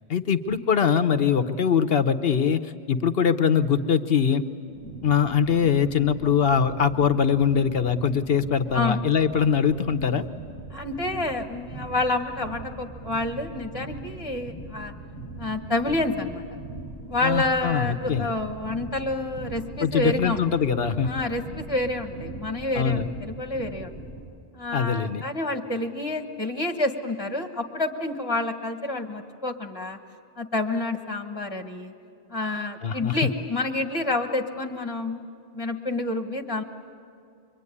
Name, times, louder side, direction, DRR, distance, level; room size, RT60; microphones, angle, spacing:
voice 1, 0.1-4.4 5.0-10.3 17.2-18.3 19.8-21.1 22.7-23.1 24.7-25.2 32.8-33.2, left 7 dB, 60° left, 10 dB, 1.1 m, -22 dB
sound 1, 4.7-24.2, right 2 dB, 85° right, 6.4 m, -40 dB
voice 2, 10.7-14.9 15.4-16.4 17.1-20.5 21.1-23.9 24.5-30.0 30.4-31.9 32.3-35.3 35.5-36.6, left 2 dB, 20° left, 4 dB, 1.3 m, -28 dB
25.0 x 23.5 x 9.8 m, 2.4 s
omnidirectional pair, 1.1 m